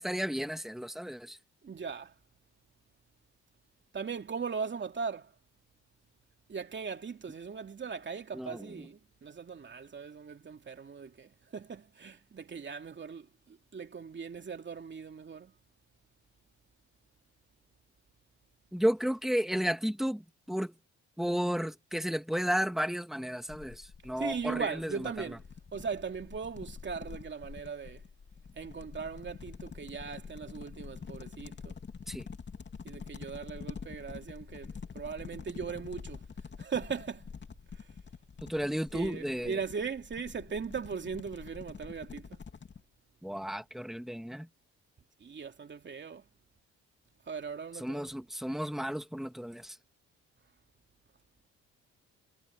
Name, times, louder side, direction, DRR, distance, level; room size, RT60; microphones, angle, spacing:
voice 1, 0.0-1.4 8.3-8.9 18.7-20.7 21.2-25.4 32.1-32.3 38.4-39.6 43.2-44.5 47.7-49.8, equal, ahead, 2.1 m, -33 dB
voice 2, 1.6-2.1 3.9-5.3 6.5-15.5 24.2-25.4 25.7-28.0 28.5-31.7 32.8-34.7 34.9-36.2 36.6-37.3 38.9-42.4 45.2-46.2 47.3-48.1, right 5 dB, 40° right, 2.7 m, -39 dB
sound 1, 23.5-42.8, left 5 dB, 35° left, 2.8 m, -46 dB
cardioid pair, 90°, 30 cm